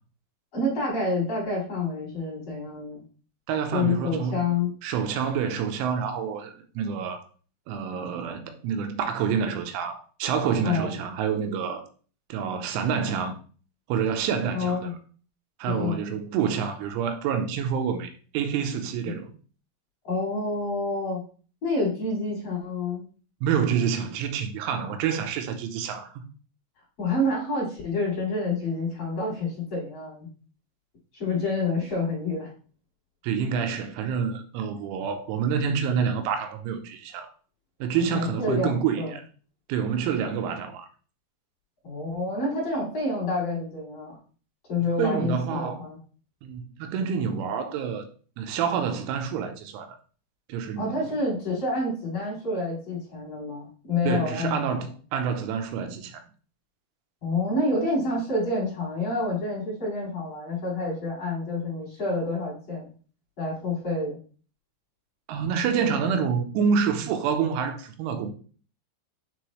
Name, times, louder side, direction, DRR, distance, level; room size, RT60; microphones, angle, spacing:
voice 1, 0.5-3.0 3.7-4.7 10.6-10.9 14.5-14.9 15.7-16.0 19.0-19.1 20.0-21.2 21.6-23.0 27.0-30.3 31.1-32.5 38.0-39.1 41.8-44.2 44.7-46.0 50.8-54.8 57.2-62.9 63.4-64.2, left 2 dB, 35° left, 3.4 m, -28 dB
voice 2, 3.5-4.4 4.8-7.2 7.7-11.9 12.3-13.4 13.9-14.9 15.6-19.3 23.4-26.2 33.2-37.3 37.8-39.2 39.7-40.9 45.0-45.8 46.4-48.1 48.4-50.0 50.5-51.0 54.0-56.2 65.3-68.3, right 7 dB, 85° right, 3.2 m, -27 dB
9.2 x 3.9 x 3.1 m
omnidirectional pair, 5.7 m